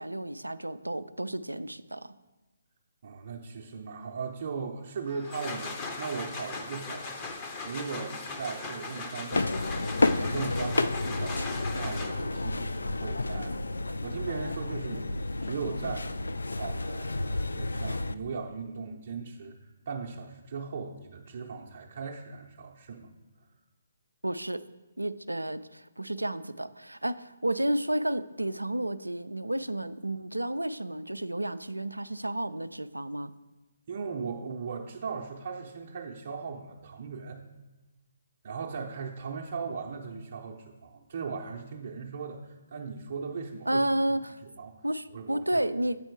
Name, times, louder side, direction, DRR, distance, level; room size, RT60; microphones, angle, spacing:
voice 1, 0.0-2.1 24.2-24.6 25.0-33.3 43.7-44.4 44.8-46.0, right 1 dB, 85° right, 13 dB, 0.3 m, -31 dB
voice 2, 3.0-7.3 7.6-9.5 10.1-13.6 14.0-16.1 16.5-23.1 33.9-37.4 38.4-43.8 44.6-44.8 45.1-45.6, right 5 dB, 45° right, -1 dB, 0.6 m, -38 dB
sound 1, 5.1-12.4, left 3 dB, 20° left, 0.7 m, -39 dB
sound 2, 9.3-18.1, left 2 dB, 70° left, 0.3 m, -30 dB
8.2 x 4.4 x 4.7 m, 1.1 s
figure-of-eight pair, 140°, 0 cm